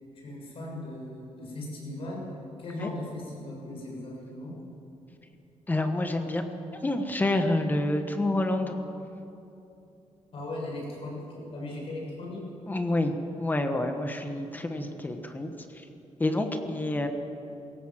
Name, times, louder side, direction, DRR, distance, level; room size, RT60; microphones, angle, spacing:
voice 1, 0.1-2.2 2.6-4.5 10.3-12.4, left 1 dB, 50° left, -3 dB, 6.8 m, -38 dB
voice 2, 5.7-6.4 6.7-8.8 12.7-15.9 16.2-17.1, left 1 dB, 15° left, 5 dB, 1.3 m, -28 dB
23.5 x 17.0 x 7.6 m, 2.8 s
wide cardioid pair, 175°, 12 cm